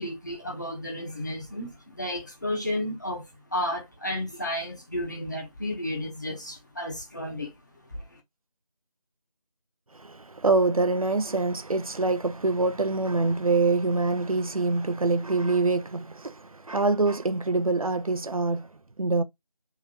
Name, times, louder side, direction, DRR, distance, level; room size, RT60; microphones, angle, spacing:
voice 1, 0.0-3.2 3.5-7.5, left 1 dB, 30° left, 1.2 m, -32 dB
voice 2, 9.9-18.7 19.0-19.2, right 3 dB, 65° right, 0.5 m, -25 dB
3.6 x 3.0 x 2.9 m
figure-of-eight pair, 170°, 19 cm